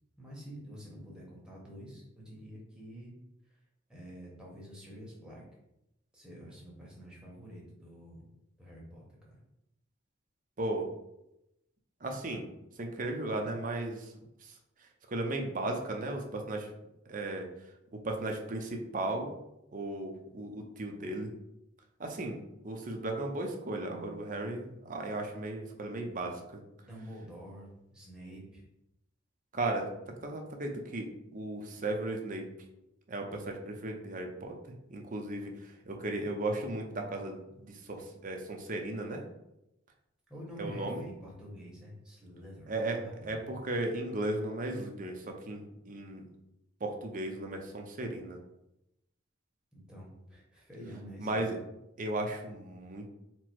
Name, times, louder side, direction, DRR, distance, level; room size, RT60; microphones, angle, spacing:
voice 1, 0.2-3.1 3.5-3.6 3.9-5.4 6.1-8.3 8.6-9.3 26.8-28.6 40.3-43.5 49.7-51.6, equal, 5° right, -5 dB, 1.1 m, -48 dB
voice 2, 10.6-10.9 12.0-12.5 12.8-14.1 14.4-14.6 15.1-16.7 17.1-17.5 17.9-19.3 19.7-21.3 22.0-22.4 22.6-26.6 29.5-32.5 33.1-39.2 40.6-41.0 42.7-46.3 46.8-48.4 51.2-51.6 52.0-53.1, right 2 dB, 40° right, 2 dB, 0.6 m, -36 dB
4.4 x 2.0 x 4.4 m, 0.86 s
head